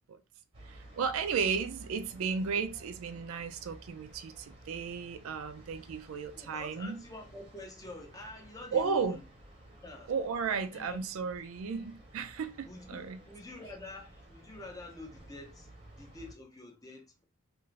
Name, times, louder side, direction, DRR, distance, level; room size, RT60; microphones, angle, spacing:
sound 1, 0.5-16.3, right 1 dB, 25° right, 0.7 m, -54 dB
voice 1, 0.7-7.0 8.7-9.2 10.1-13.2, right 5 dB, 70° right, 0.3 m, -34 dB
voice 2, 6.4-9.2 9.6-10.1 10.7-11.0 12.6-17.2, left 2 dB, 15° left, 0.5 m, -47 dB
2.4 x 2.4 x 3.0 m
head